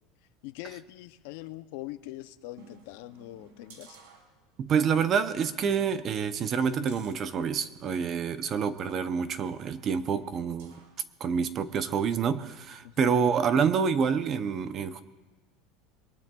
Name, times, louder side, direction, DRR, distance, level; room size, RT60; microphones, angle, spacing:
voice 1, 0.4-4.0 12.8-13.1, left 16 dB, 60° left, 12 dB, 0.5 m, -42 dB
sound 1, 2.5-4.8 5.2-5.3 5.7-8.2 8.8-11.0 11.5-11.6, right 5 dB, 90° right, 2.5 m, -56 dB
voice 2, 4.6-10.7 11.2-15.0, right 6 dB, 25° right, 12 dB, 0.5 m, -27 dB
22.5 x 19.5 x 2.3 m, 1.2 s
cardioid pair, 175°, 0 cm